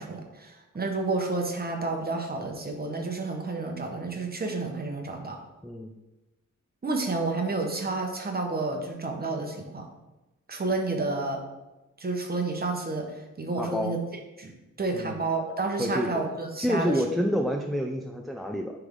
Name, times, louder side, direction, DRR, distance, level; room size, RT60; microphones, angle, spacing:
voice 1, 0.0-5.4 6.8-9.9 10.5-11.4 12.0-13.0 13.4-14.0 14.4-14.5 14.8-16.9, right 3 dB, 30° right, 2 dB, 1.0 m, -30 dB
voice 2, 5.6-6.0 13.6-14.0 14.9-15.2 15.8-16.1 16.6-18.7, equal, ahead, 2 dB, 0.3 m, -28 dB
9.7 x 3.4 x 3.7 m, 1.0 s
wide cardioid pair, 160°, 31 cm